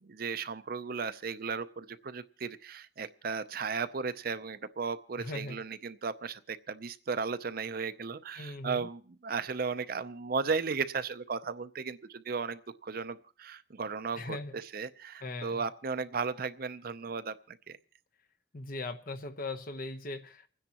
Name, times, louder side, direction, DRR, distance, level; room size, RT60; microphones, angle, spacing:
voice 1, 0.0-17.8, right 5 dB, 55° right, 13 dB, 0.6 m, -35 dB
voice 2, 5.2-5.6 8.4-8.9 14.2-14.6 15.2-15.6 18.5-20.5, left 2 dB, 55° left, 7 dB, 1.0 m, -39 dB
29.0 x 10.0 x 3.0 m, 0.41 s
head